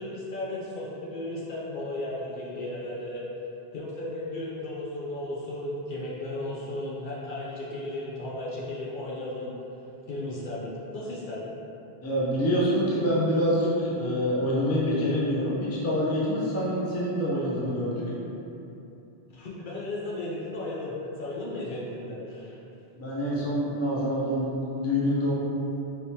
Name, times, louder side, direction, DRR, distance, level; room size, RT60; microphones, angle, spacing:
voice 1, 0.0-3.2 3.7-9.6 10.1-11.5 19.3-22.6, left 1 dB, 60° left, -6 dB, 0.6 m, -35 dB
voice 2, 12.0-18.1 22.9-25.3, equal, 20° left, -7 dB, 0.4 m, -26 dB
3.3 x 2.9 x 2.7 m, 2.9 s
omnidirectional pair, 1.1 m